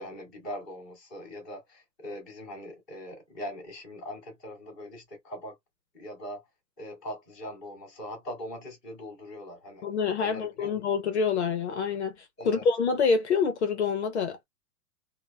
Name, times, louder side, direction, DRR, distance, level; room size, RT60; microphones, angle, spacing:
voice 1, 0.0-5.6 5.9-6.4 6.8-9.8 10.2-10.8 12.4-12.6, equal, ahead, 0.5 m, -41 dB
voice 2, 9.8-14.4, left 5 dB, 45° left, 0.5 m, -27 dB
3.1 x 2.0 x 2.2 m
hypercardioid pair, 170°, 48 cm